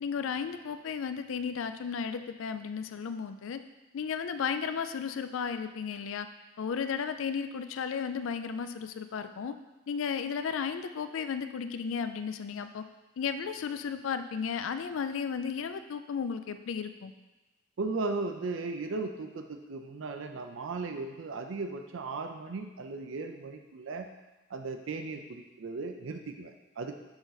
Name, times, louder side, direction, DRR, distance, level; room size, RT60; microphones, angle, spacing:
voice 1, 0.0-3.6 3.9-6.3 6.6-9.6 9.9-12.8 13.2-17.1, left 6 dB, 80° left, 10 dB, 0.4 m, -34 dB
voice 2, 17.8-24.1 24.5-27.0, right 3 dB, 75° right, 5 dB, 0.5 m, -36 dB
7.0 x 3.8 x 4.0 m, 1.2 s
head